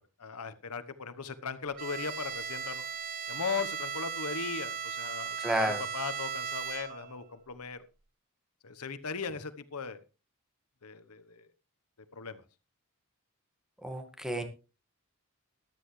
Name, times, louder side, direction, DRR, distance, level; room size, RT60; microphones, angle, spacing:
voice 1, 0.2-2.9 3.3-7.8 8.6-10.0 10.8-11.5 12.1-12.4, left 5 dB, 90° left, 12 dB, 1.1 m, -38 dB
Bowed string instrument, 1.8-7.2, right 7 dB, 40° right, 0.8 m, -37 dB
voice 2, 5.4-5.8 13.8-14.4, right 1 dB, 5° right, 6 dB, 1.8 m, -31 dB
14.0 x 12.5 x 3.2 m, 0.31 s
head